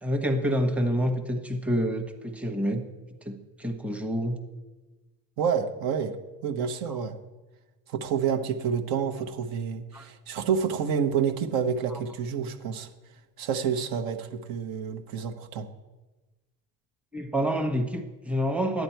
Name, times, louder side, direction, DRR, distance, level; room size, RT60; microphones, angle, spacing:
voice 1, 0.0-2.8 3.2-4.4 6.9-7.0 9.9-10.1 17.1-18.8, equal, 5° right, 4 dB, 1.1 m, -28 dB
voice 2, 5.4-6.2 6.4-7.2 7.9-12.9 13.4-15.7, right 7 dB, 65° right, 4 dB, 1.2 m, -28 dB
9.9 x 9.4 x 4.5 m, 1.2 s
supercardioid pair, 95°, 39 cm